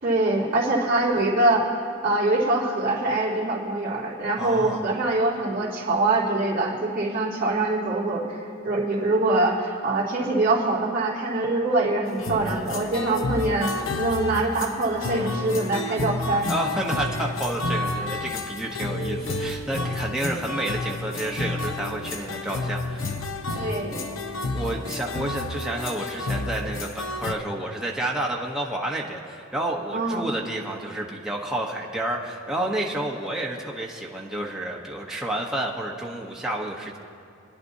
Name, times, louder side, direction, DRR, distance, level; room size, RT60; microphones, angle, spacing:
voice 1, 0.0-1.6 2.0-8.2 8.6-16.5 23.5-24.0 29.9-30.3, right 2 dB, 50° right, -5 dB, 2.6 m, -24 dB
voice 2, 4.4-4.8 16.5-23.1 24.5-37.0, right 1 dB, 5° right, -3 dB, 1.0 m, -30 dB
sound 1, 12.1-27.3, left 2 dB, 85° left, 0.8 m, -30 dB
27.0 x 10.5 x 2.7 m, 2.8 s
head